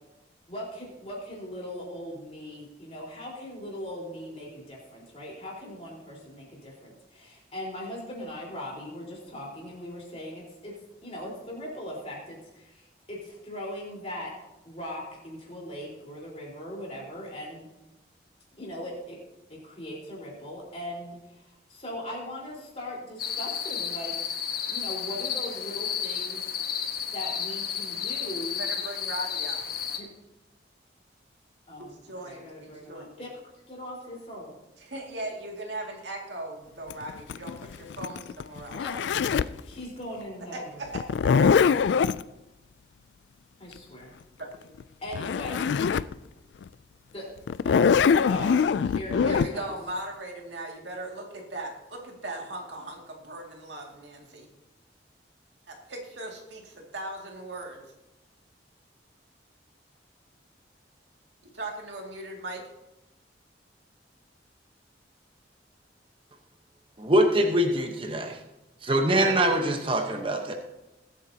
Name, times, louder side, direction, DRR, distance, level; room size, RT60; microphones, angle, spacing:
voice 1, 0.5-14.3 14.6-17.7 18.6-19.2 19.5-24.1 24.7-26.5 27.1-28.6 30.0-30.1 31.7-31.9 32.2-33.3 33.7-34.5 38.7-40.8 43.6-44.1 45.0-45.6 47.1-47.3 47.6-48.6 48.8-49.7, left 1 dB, 35° left, -3 dB, 4.1 m, -39 dB
sound 1, 23.2-30.0, left 8 dB, 55° left, 1.2 m, -32 dB
voice 2, 28.6-29.6 32.0-33.2 34.8-38.8 40.5-41.3 44.4-44.5 49.2-54.5 55.7-57.8 61.4-62.6, right 1 dB, 75° right, 0 dB, 2.2 m, -38 dB
Zipper (clothing), 36.9-39.6 40.9-42.2 44.8-44.9 45.1-46.1 46.6-46.7 47.5-49.5, left 6 dB, 70° left, 0.3 m, -23 dB
voice 3, 67.0-68.4 68.8-70.5, right 1 dB, 30° right, 4 dB, 1.0 m, -23 dB
21.0 x 8.5 x 2.8 m, 0.98 s
head